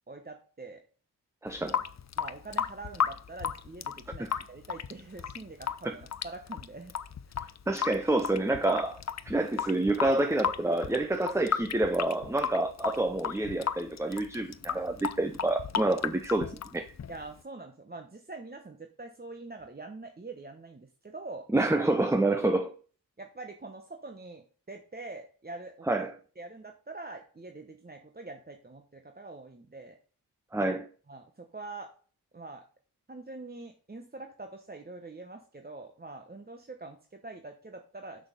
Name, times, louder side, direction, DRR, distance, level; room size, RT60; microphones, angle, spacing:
voice 1, 0.1-0.8 2.2-6.9 17.1-21.5 23.2-26.1 26.4-30.0 31.1-31.9 32.3-32.6 33.1-38.3, right 3 dB, 25° right, 1.0 m, -44 dB
voice 2, 1.4-1.8 4.2-4.4 5.8-6.0 7.7-9.0 9.3-16.9 21.5-22.7 25.9-26.1 30.5-30.9, right 2 dB, 5° right, 0.7 m, -28 dB
Water tap faucet / Sink (filling or washing) / Drip, 1.5-17.4, left 7 dB, 40° left, 0.6 m, -35 dB
6.3 x 6.3 x 5.2 m
cardioid pair, 50°, 40 cm